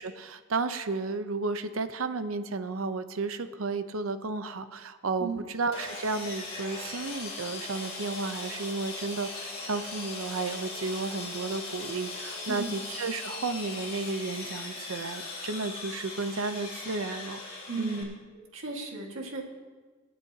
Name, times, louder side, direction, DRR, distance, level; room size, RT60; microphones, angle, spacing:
voice 1, 0.0-17.4 17.8-18.2, right 3 dB, 85° right, 10 dB, 0.7 m, -33 dB
Sawing, 5.7-18.0, left 3 dB, 30° left, 3.0 m, -39 dB
voice 2, 17.7-18.1 18.3-19.4, right 4 dB, 70° right, 1 dB, 1.8 m, -35 dB
25.5 x 8.7 x 2.8 m, 1.4 s
head